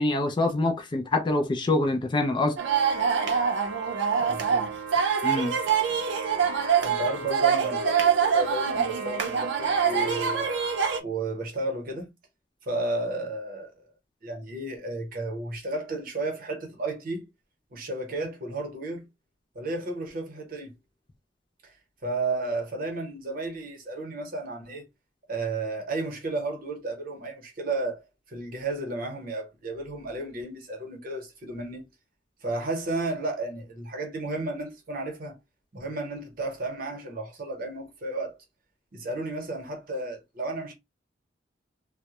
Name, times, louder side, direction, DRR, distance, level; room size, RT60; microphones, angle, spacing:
voice 1, 0.0-2.6 5.2-5.5, left 2 dB, 25° left, 0.3 m, -25 dB
sound 1, 2.6-11.0, right 7 dB, 70° right, 0.5 m, -25 dB
voice 2, 4.2-4.7 6.8-10.5 11.0-12.1 12.6-13.7 14.2-17.3 17.7-19.1 19.5-20.8 21.6-21.7 22.0-24.9 25.3-28.0 28.3-31.9 32.4-35.4 35.7-38.4 38.9-40.7, right 2 dB, 50° right, 0.9 m, -33 dB
2.2 x 2.0 x 2.8 m
head